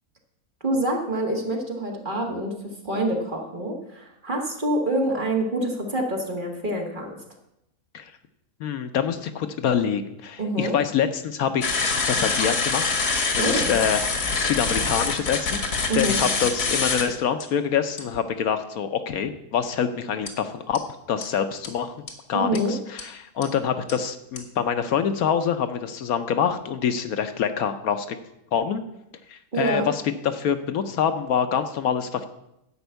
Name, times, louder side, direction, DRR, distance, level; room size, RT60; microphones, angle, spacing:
voice 1, 0.6-2.5 2.8-7.2 10.4-10.7 13.4-13.7 15.9-16.2 22.3-22.7 29.5-29.9, right 1 dB, 35° right, 1 dB, 1.8 m, -26 dB
voice 2, 8.6-11.8 12.1-20.8 21.1-22.0 22.3-28.2 28.5-28.8 29.3-32.3, left 7 dB, 70° left, 9 dB, 1.2 m, -26 dB
sound 1, 11.6-17.0 17.4-17.5 18.0-18.2 20.3-20.4 20.7-20.8 21.2-21.3 21.6-21.7 22.1-22.2 22.5-22.6 23.0-23.1 23.4-23.5 23.9-24.0 24.4-24.5, left 4 dB, 85° left, 2.1 m, -25 dB
11.5 x 5.3 x 8.0 m, 0.85 s
omnidirectional pair, 1.6 m